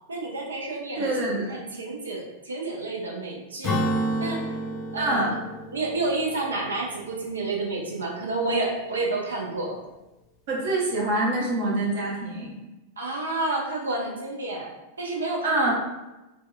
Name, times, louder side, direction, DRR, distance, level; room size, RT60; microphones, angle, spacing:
voice 1, 0.1-3.8 4.2-4.5 4.9-5.3 5.7-9.8 13.0-15.7, right 2 dB, 70° right, 0 dB, 0.5 m, -30 dB
voice 2, 1.0-1.6 5.0-5.3 10.5-12.5 15.4-15.7, right 2 dB, 50° right, -3 dB, 0.8 m, -25 dB
Acoustic guitar / Strum, 3.6-7.3, right 1 dB, 30° left, 0.7 m, -30 dB
4.1 x 2.2 x 2.2 m, 1.0 s
figure-of-eight pair, 90°, 0 cm